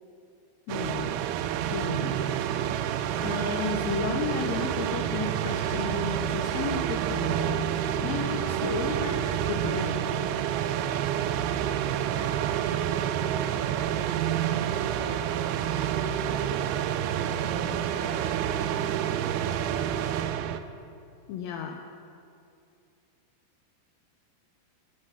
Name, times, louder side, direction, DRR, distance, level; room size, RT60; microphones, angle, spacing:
voice 1, 0.7-1.2 1.6-2.2 3.2-7.7 8.0-9.2 9.5-10.0 21.3-21.8, left 6 dB, 85° left, 3 dB, 2.1 m, -33 dB
sound 1, 0.7-20.6, right 10 dB, 85° right, 2.2 m, -28 dB
voice 2, 11.9-18.7, right 3 dB, 65° right, -3 dB, 1.9 m, -43 dB
16.0 x 5.7 x 6.9 m, 2.5 s
omnidirectional pair, 4.9 m